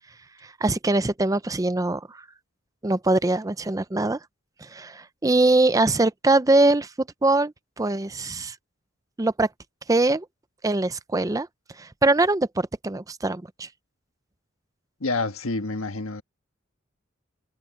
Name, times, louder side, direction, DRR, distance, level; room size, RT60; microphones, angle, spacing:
voice 1, 0.4-2.3 2.8-4.2 4.6-8.6 9.2-9.5 9.9-10.3 10.6-11.5 11.8-13.7, right 2 dB, 15° right, 0.5 m, -22 dB
voice 2, 15.0-16.2, left 3 dB, 85° left, 1.4 m, -28 dB
head